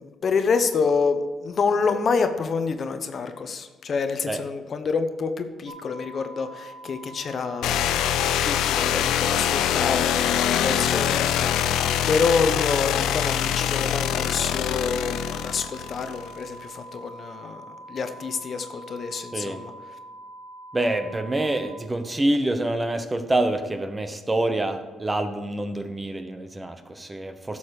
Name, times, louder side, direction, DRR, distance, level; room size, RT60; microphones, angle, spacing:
voice 1, 0.0-19.7, left 5 dB, 50° left, 8 dB, 0.9 m, -27 dB
sound 1, 5.7-21.6, right 1 dB, 90° right, 3.2 m, -44 dB
sound 2, 7.6-16.4, left 10 dB, 90° left, 0.5 m, -24 dB
voice 2, 20.7-27.6, right 1 dB, 20° right, 8 dB, 1.0 m, -26 dB
12.0 x 7.1 x 4.9 m, 1.3 s
cardioid pair, 90°, 0 cm